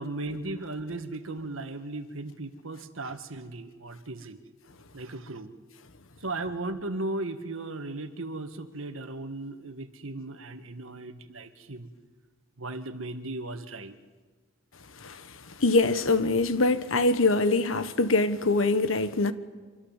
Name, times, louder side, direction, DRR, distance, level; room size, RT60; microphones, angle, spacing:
voice 1, 0.0-4.4 4.9-5.5 6.2-11.9 12.6-14.0, right 2 dB, 85° right, 1.8 m, -36 dB
voice 2, 15.0-19.3, left 3 dB, 80° left, 1.4 m, -24 dB
25.5 x 24.5 x 7.4 m
head